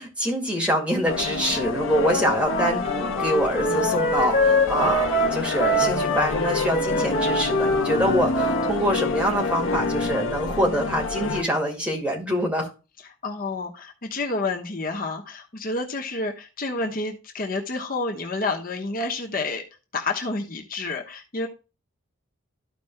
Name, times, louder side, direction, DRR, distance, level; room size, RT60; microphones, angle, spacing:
voice 1, 0.0-12.7, equal, 5° right, 2.1 m, -25 dB
sound 1, 1.1-11.4, left 4 dB, 75° left, 0.7 m, -27 dB
Wind instrument woodwind instrument, 2.4-8.8, right 1 dB, 25° left, 2.9 m, -25 dB
voice 2, 13.2-19.6 19.9-21.5, left 3 dB, 45° left, 1.1 m, -29 dB
13.5 x 5.1 x 2.2 m
head